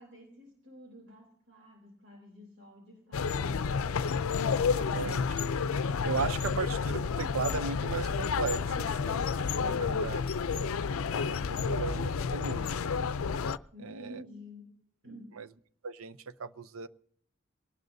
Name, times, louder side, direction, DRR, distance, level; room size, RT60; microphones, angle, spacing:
voice 1, 0.0-3.7 13.7-15.4, left 1 dB, 60° right, 0 dB, 3.4 m, -51 dB
sound 1, 3.1-13.6, left 5 dB, 85° left, 0.5 m, -30 dB
voice 2, 4.6-5.4 6.0-10.2 10.5-12.7 13.8-14.2 15.4-15.5 15.8-16.9, right 5 dB, 85° right, 13 dB, 0.7 m, -37 dB
22.5 x 18.5 x 2.7 m, 0.67 s
head